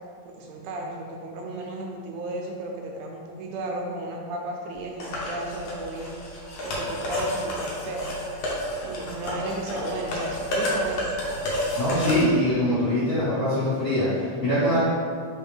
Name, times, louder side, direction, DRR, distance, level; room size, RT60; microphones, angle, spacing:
voice 1, 0.2-8.3 8.8-11.1, right 2 dB, 80° right, 0 dB, 2.0 m, -34 dB
sound 1, 5.0-12.2, left 1 dB, 70° left, 1.5 m, -30 dB
voice 2, 11.8-14.8, left 1 dB, 85° left, -13 dB, 0.7 m, -23 dB
4.6 x 3.5 x 3.3 m, 2.1 s
omnidirectional pair, 3.6 m